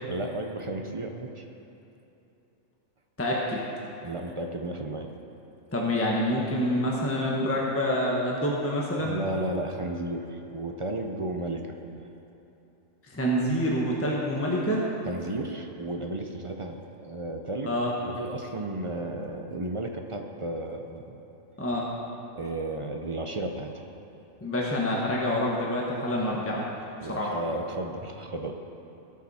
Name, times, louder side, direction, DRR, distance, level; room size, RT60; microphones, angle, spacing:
voice 1, 0.1-1.4 4.0-5.1 9.0-11.8 15.1-17.8 18.0-21.0 22.4-23.8 27.0-28.5, right 1 dB, 35° right, 4 dB, 0.6 m, -33 dB
voice 2, 3.2-3.6 5.7-9.2 13.1-14.8 17.6-17.9 21.6-21.9 24.4-26.6 27.1-27.3, equal, 10° left, -3 dB, 1.2 m, -27 dB
17.5 x 7.4 x 4.2 m, 2.9 s
omnidirectional pair, 1.4 m